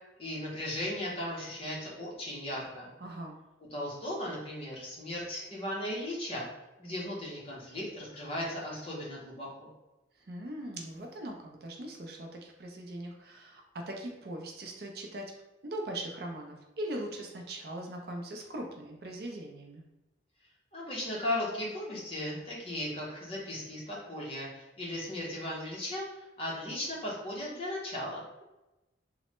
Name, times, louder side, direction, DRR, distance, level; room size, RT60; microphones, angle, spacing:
voice 1, 0.2-2.9 3.7-6.5 6.8-9.7 20.7-28.2, left 1 dB, 30° left, -4 dB, 0.7 m, -37 dB
voice 2, 3.0-3.4 10.2-15.2 15.6-19.8, right 1 dB, 55° right, 2 dB, 0.4 m, -40 dB
3.1 x 2.0 x 2.9 m, 0.97 s
head